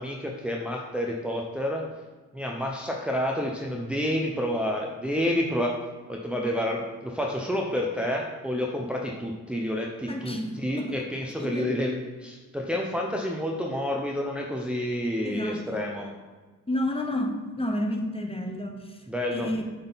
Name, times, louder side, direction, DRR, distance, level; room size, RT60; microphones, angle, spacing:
voice 1, 0.0-1.9 2.3-5.8 6.1-16.1 19.1-19.5, equal, 5° right, -1 dB, 0.7 m, -29 dB
voice 2, 10.1-10.9 11.4-11.7 15.2-15.8 16.7-19.0 19.3-19.6, left 1 dB, 15° left, 3 dB, 1.0 m, -30 dB
7.7 x 3.9 x 4.0 m, 1.3 s
cardioid pair, 60°, 32 cm